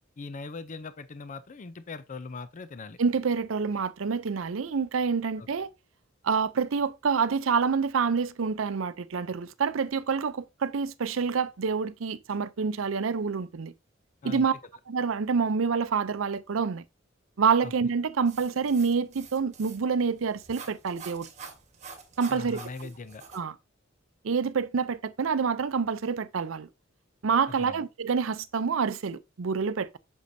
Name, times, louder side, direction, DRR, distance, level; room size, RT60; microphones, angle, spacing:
voice 1, 0.2-3.0 5.4-5.5 14.2-14.4 17.6-17.7 22.3-23.2 27.6-27.8, left 4 dB, 40° left, 0.5 m, -40 dB
voice 2, 3.0-5.7 6.2-13.7 14.2-14.5 14.9-16.8 17.4-21.3 22.2-22.9 23.3-23.5 24.2-26.7 27.2-30.0, right 5 dB, 80° right, 0.5 m, -27 dB
sound 1, 18.3-23.4, right 5 dB, 35° right, 1.4 m, -47 dB
8.4 x 6.3 x 2.7 m
head